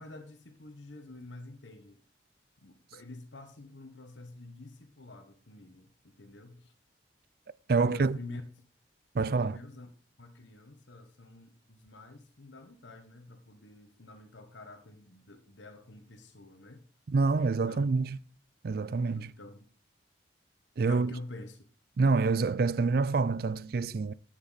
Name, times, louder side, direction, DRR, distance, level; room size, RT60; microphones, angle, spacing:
voice 1, 0.0-2.0 2.6-6.7 7.7-8.4 9.2-9.9 10.2-16.8 17.4-17.9 19.1-19.7 20.8-21.6, left 2 dB, 85° left, 1.3 m, -48 dB
voice 2, 7.7-8.2 9.1-9.6 17.1-18.2 18.6-19.3 20.8-21.1 22.0-24.1, right 4 dB, 55° right, 0.4 m, -27 dB
9.8 x 8.2 x 4.1 m
head